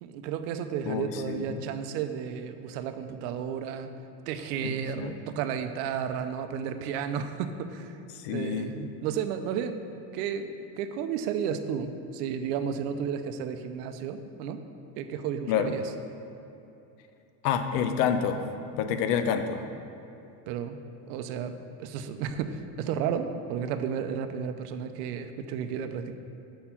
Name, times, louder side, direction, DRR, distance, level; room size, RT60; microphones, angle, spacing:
voice 1, 0.0-3.9 4.3-8.0 8.3-9.8 10.1-14.6 15.0-15.8 20.5-20.8 21.1-21.5 21.8-26.1, right 7 dB, 75° right, 9 dB, 0.6 m, -32 dB
voice 2, 0.9-1.4 4.6-4.7 5.0-5.1 8.2-8.7 15.5-15.7 17.4-18.4 18.7-19.6, left 7 dB, 80° left, 8 dB, 0.7 m, -28 dB
5.6 x 4.3 x 5.6 m, 2.9 s
supercardioid pair, 140°, 48 cm